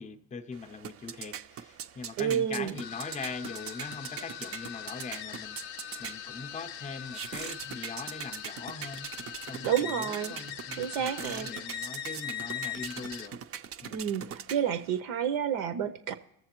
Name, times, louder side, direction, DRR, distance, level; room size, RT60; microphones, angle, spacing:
voice 1, 0.0-9.1 9.5-13.4 13.8-14.1, left 4 dB, 15° left, 0.5 m, -41 dB
sound 1, 0.5-15.0, right 8 dB, 30° right, 0.4 m, -43 dB
voice 2, 2.2-2.7 9.6-10.3 10.8-11.5 13.9-16.1, right 9 dB, 70° right, 0.7 m, -30 dB
sound 2, 2.7-13.3, left 10 dB, 90° left, 0.6 m, -41 dB
20.5 x 7.0 x 2.9 m
hypercardioid pair, 70°, 47 cm